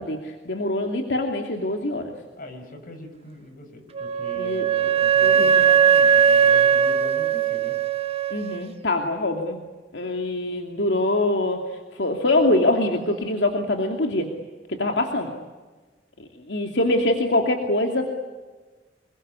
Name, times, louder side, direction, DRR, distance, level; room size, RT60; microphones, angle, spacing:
voice 1, 0.0-2.1 4.3-5.7 8.3-9.6 9.9-11.6 11.9-14.3 14.7-15.3 16.5-18.1, left 2 dB, 80° left, 3 dB, 2.7 m, -24 dB
voice 2, 2.4-7.8 12.5-12.6, left 1 dB, 55° left, 6 dB, 6.5 m, -41 dB
Wind instrument woodwind instrument, 3.9-8.6, right 7 dB, 35° right, 1.7 m, -19 dB
27.0 x 22.5 x 9.7 m, 1.3 s
head